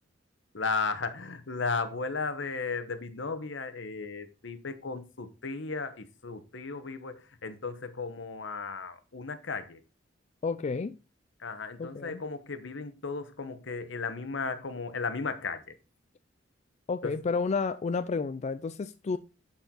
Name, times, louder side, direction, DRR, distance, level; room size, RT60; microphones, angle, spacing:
voice 1, 0.5-7.1 7.4-9.8 11.4-15.6 17.0-17.1, left 4 dB, 75° left, 1.1 m, -35 dB
voice 2, 10.4-11.0 11.8-12.2 16.9-19.2, left 4 dB, 35° left, 0.4 m, -31 dB
11.5 x 4.5 x 3.8 m
head